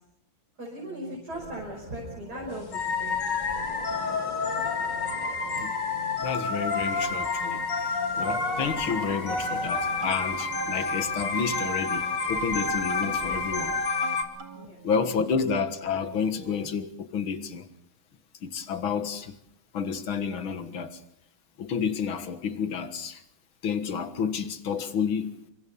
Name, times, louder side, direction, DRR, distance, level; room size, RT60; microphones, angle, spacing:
voice 1, 0.6-3.2 14.5-14.8, equal, 50° right, 6.0 m, -38 dB
sound 1, 0.7-16.8, right 5 dB, 90° right, 2.9 m, -46 dB
sound 2, 1.3-13.8, left 1 dB, 20° left, 3.2 m, -46 dB
sound 3, 2.7-14.2, left 4 dB, 60° left, 2.9 m, -29 dB
voice 2, 6.2-7.9 8.2-13.8 14.8-17.7 18.4-19.3 19.7-21.0 21.6-23.2 23.6-25.3, left 6 dB, 80° left, 2.4 m, -30 dB
29.0 x 24.5 x 5.5 m
omnidirectional pair, 2.2 m